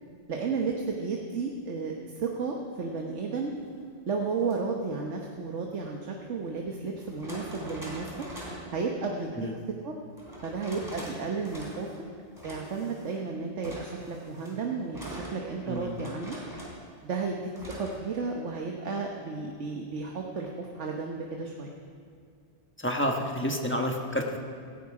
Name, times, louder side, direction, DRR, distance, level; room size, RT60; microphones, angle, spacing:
voice 1, 0.3-3.5 4.1-8.2 8.7-9.5 9.8-9.9 10.4-11.9 12.4-16.4 17.0-17.4 17.8-21.7, right 4 dB, 85° right, 1 dB, 1.5 m, -33 dB
sound 1, 4.4-4.5 6.1-6.2 7.0-8.7 10.2-11.2 11.4-12.0 12.4-13.2 13.6-16.8 17.6-18.0, equal, 20° right, 3.6 m, -43 dB
voice 2, 15.7-16.0 22.8-24.4, equal, 10° left, 1 dB, 1.3 m, -29 dB
17.5 x 16.0 x 4.9 m, 2.1 s
omnidirectional pair, 1.2 m